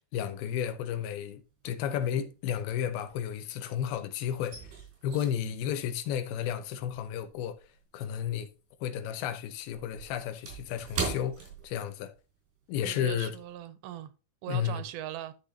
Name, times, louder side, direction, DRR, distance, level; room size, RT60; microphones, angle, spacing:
voice 1, 0.1-4.7 5.0-7.6 7.9-8.5 8.8-12.1 12.7-13.4 14.5-14.8, left 9 dB, 80° left, 2.7 m, -32 dB
sound 1, 0.9-1.5 1.8-3.8 4.0-8.7 9.0-12.3 12.6-12.8 13.3-13.5, right 4 dB, 65° right, 5.1 m, -41 dB
voice 2, 12.8-14.1 14.4-15.3, right 11 dB, 90° right, 2.5 m, -40 dB
12.0 x 5.9 x 2.9 m
omnidirectional pair, 4.4 m